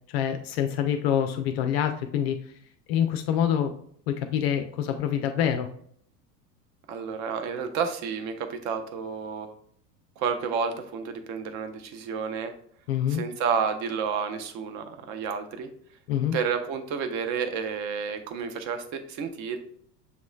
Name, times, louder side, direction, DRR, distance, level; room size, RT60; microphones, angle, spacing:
voice 1, 0.1-2.4 2.9-3.7 4.1-5.7 12.9-13.2 16.1-16.4, left 9 dB, 40° left, 6 dB, 0.4 m, -26 dB
voice 2, 6.9-9.5 10.2-12.5 13.1-15.7 16.3-19.6, right 6 dB, 35° right, 7 dB, 0.7 m, -30 dB
6.9 x 3.0 x 2.3 m, 0.64 s
figure-of-eight pair, 80°, 49 cm